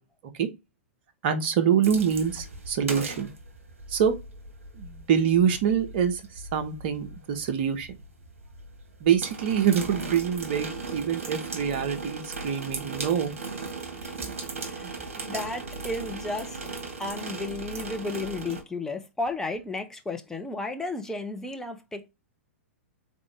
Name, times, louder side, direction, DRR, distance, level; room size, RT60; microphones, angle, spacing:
voice 1, 1.2-3.3 3.9-4.2 4.7-8.0 9.0-13.3, right 8 dB, 50° right, 0.9 m, -25 dB
sound 1, 1.8-18.6, right 3 dB, 70° right, 1.4 m, -37 dB
voice 2, 14.7-16.6 17.0-22.1, left 2 dB, 5° left, 0.7 m, -33 dB
3.8 x 3.5 x 3.3 m
figure-of-eight pair, 110°, 7 cm